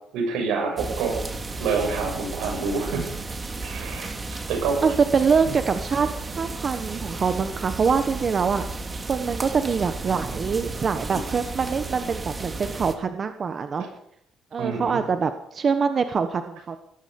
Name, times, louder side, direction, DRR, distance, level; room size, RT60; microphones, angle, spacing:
voice 1, 0.1-1.2 1.6-3.2 3.6-4.9 5.4-5.5 14.6-15.0, right 4 dB, 85° right, 2 dB, 7.2 m, -27 dB
sound 1, 0.8-13.0, right 3 dB, 25° right, 2.4 m, -33 dB
voice 2, 4.8-8.6 9.1-13.8 14.5-16.8, right 5 dB, 40° right, 9 dB, 1.1 m, -24 dB
18.5 x 14.5 x 5.4 m, 0.71 s
cardioid pair, 100°, 0 cm